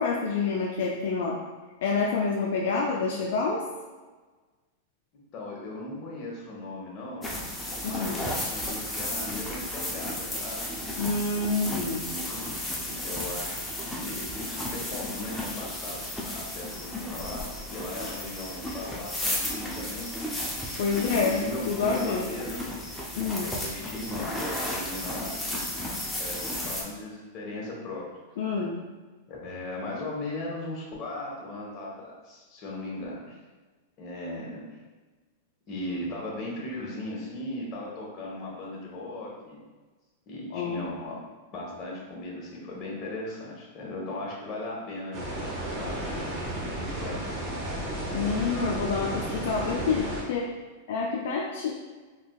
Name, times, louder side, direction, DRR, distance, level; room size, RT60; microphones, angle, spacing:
voice 1, 0.0-1.4 1.8-3.6 7.8-8.2 11.0-12.1 20.8-22.3 23.2-23.5 28.4-28.8 40.5-40.9 48.1-50.5 50.9-51.7, left 4 dB, 70° left, -2 dB, 0.4 m, -28 dB
voice 2, 5.3-7.3 7.8-10.7 11.6-12.6 12.9-16.0 16.2-20.2 20.9-22.6 23.6-25.4 26.1-28.1 29.3-33.4 34.0-34.7 35.7-39.6 40.3-41.2 41.5-45.2 45.7-46.4 46.6-47.7, left 2 dB, 35° left, -3 dB, 1.1 m, -37 dB
sound 1, 7.2-26.8, left 1 dB, 5° left, 0.6 m, -34 dB
sound 2, 45.1-50.2, right 1 dB, 35° right, 1.0 m, -33 dB
3.9 x 2.8 x 2.3 m, 1.3 s
hypercardioid pair, 130°, 0 cm